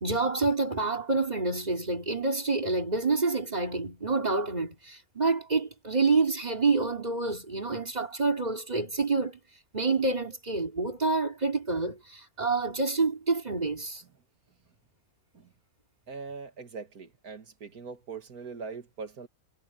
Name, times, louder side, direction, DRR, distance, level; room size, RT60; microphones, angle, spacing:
voice 1, 0.0-9.4 9.7-14.0, right 3 dB, 25° right, 2.8 m, -28 dB
voice 2, 16.1-19.3, right 5 dB, 80° right, 2.4 m, -41 dB
omnidirectional pair, 1.6 m